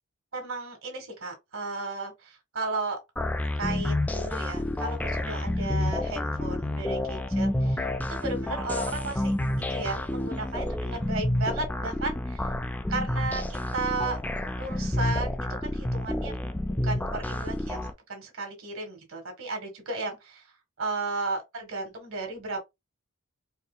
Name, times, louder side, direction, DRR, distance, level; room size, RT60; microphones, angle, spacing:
voice 1, 0.3-3.0 3.6-9.3 9.7-12.5 12.9-14.2 14.6-15.3 15.6-16.3 16.8-20.5 20.8-22.6, right 3 dB, 65° right, 1.6 m, -34 dB
sound 1, 3.2-17.9, left 1 dB, 10° left, 0.3 m, -29 dB
4.4 x 2.8 x 2.2 m
head